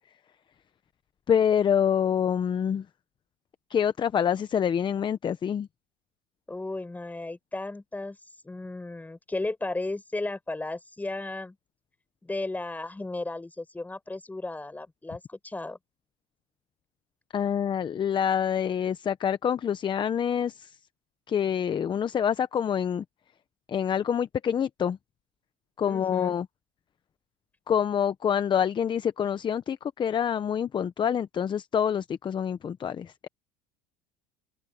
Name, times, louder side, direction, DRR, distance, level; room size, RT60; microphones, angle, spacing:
voice 1, 1.3-2.8 3.7-5.7 17.3-20.8 21.3-23.0 23.7-25.0 25.8-26.5 27.7-33.3, left 8 dB, 30° left, 1.0 m, -26 dB
voice 2, 6.5-8.2 8.4-11.6 12.2-15.8 25.9-26.3, left 2 dB, 10° left, 5.3 m, -34 dB
open air
supercardioid pair, 100°, 15 cm